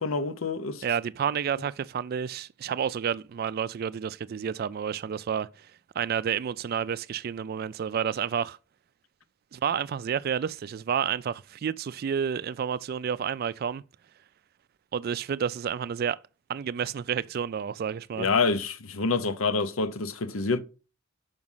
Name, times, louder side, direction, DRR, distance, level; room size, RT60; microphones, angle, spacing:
voice 1, 0.0-0.8 18.2-20.6, left 4 dB, 90° left, 0.8 m, -27 dB
voice 2, 0.8-5.7 6.0-8.6 9.5-13.8 14.9-16.2 16.5-18.3, right 7 dB, 50° right, 0.3 m, -30 dB
6.1 x 5.2 x 5.5 m
head